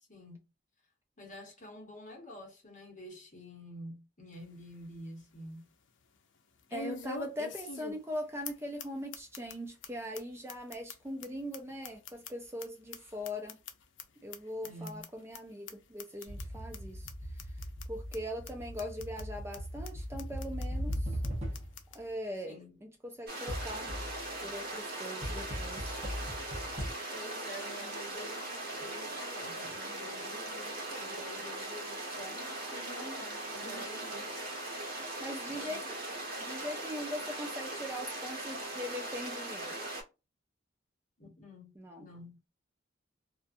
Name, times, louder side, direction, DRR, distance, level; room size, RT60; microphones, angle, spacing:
voice 1, 0.1-0.4 1.2-5.7 14.6-15.1 22.5-22.8 27.1-34.3 35.5-35.8 41.2-42.4, left 1 dB, 45° left, 1.1 m, -48 dB
sound 1, 4.3-4.4 4.9-5.0 6.7-8.2 8.4-8.5 8.8-8.9 9.1-9.5 9.8-9.9 10.1-10.2 10.5-12.6 12.9-14.0 14.3-14.4 14.6-15.1 15.3-15.4 15.7-15.8 16.0-16.4 16.7-16.8 17.1-17.2 17.4-17.8 18.1-18.2 18.5-18.6 18.8-19.2 19.5-19.6 19.8-19.9 20.2-20.6 20.9-21.0 21.2-21.3 21.5-22.0, left 4 dB, 85° left, 0.5 m, -43 dB
voice 2, 6.7-13.6 14.2-17.1 17.9-21.2 21.9-23.9 24.4-26.0 33.6-33.9 34.9-36.0 36.4-39.8 41.8-42.1, equal, 15° right, 0.4 m, -41 dB
sound 2, 16.3-21.9 23.5-24.3 25.2-26.9, equal, 35° right, 0.9 m, -39 dB
sound 3, 23.3-40.0, right 1 dB, 55° right, 1.1 m, -40 dB
2.5 x 2.4 x 2.5 m
head